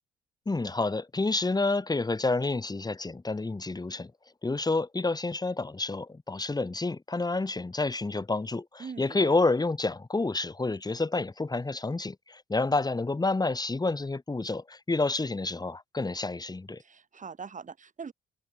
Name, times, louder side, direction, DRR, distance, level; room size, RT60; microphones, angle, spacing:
voice 1, 0.5-4.1 4.4-16.8, left 3 dB, 20° left, 4.1 m, -29 dB
voice 2, 8.8-9.4 16.8-18.1, right 6 dB, 40° right, 4.5 m, -42 dB
cardioid pair, 90°, 20 cm